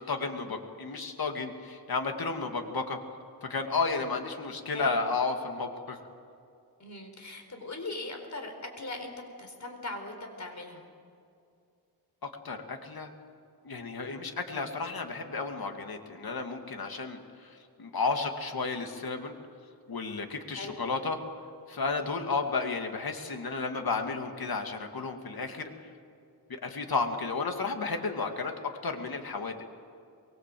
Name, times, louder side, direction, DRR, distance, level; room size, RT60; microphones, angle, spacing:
voice 1, 0.0-3.0 3.4-6.0 12.2-13.1 13.6-19.4 19.9-21.2 21.7-25.7 26.5-28.5 28.8-29.6, left 4 dB, 65° left, 5 dB, 2.5 m, -32 dB
voice 2, 6.8-9.1 9.4-10.8 20.5-20.8, left 2 dB, 45° left, 4 dB, 4.5 m, -40 dB
23.5 x 22.5 x 7.8 m, 2.4 s
wide cardioid pair, 95°, 39 cm